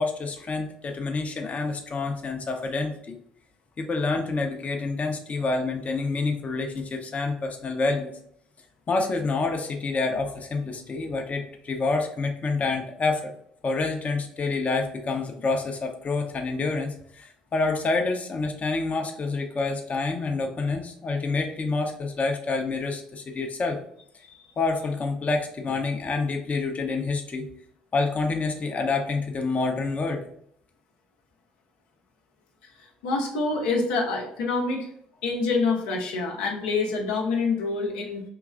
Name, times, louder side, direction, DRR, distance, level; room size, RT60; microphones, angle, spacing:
voice 1, 0.0-3.2 3.8-8.1 8.9-13.3 13.6-23.8 24.6-27.5 27.9-30.2, left 3 dB, 35° left, 3 dB, 0.7 m, -27 dB
voice 2, 33.0-34.9 35.2-38.2, left 3 dB, 75° left, 0 dB, 0.7 m, -26 dB
4.7 x 3.0 x 2.4 m, 0.67 s
hypercardioid pair, 50°, 4 cm